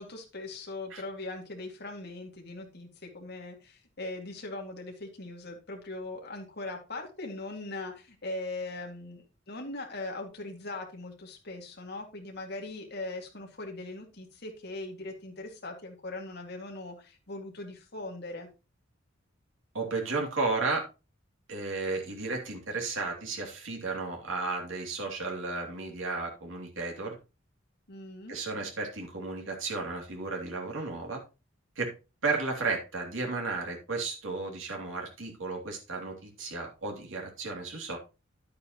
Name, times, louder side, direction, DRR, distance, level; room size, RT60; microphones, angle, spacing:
voice 1, 0.0-18.5 27.9-28.3, left 2 dB, 55° left, 2 dB, 2.3 m, -40 dB
voice 2, 19.7-20.8 21.5-27.2 28.3-31.2 31.8-31.9 32.2-38.0, right 3 dB, 85° right, 0 dB, 2.8 m, -33 dB
10.5 x 8.5 x 3.0 m, 0.29 s
head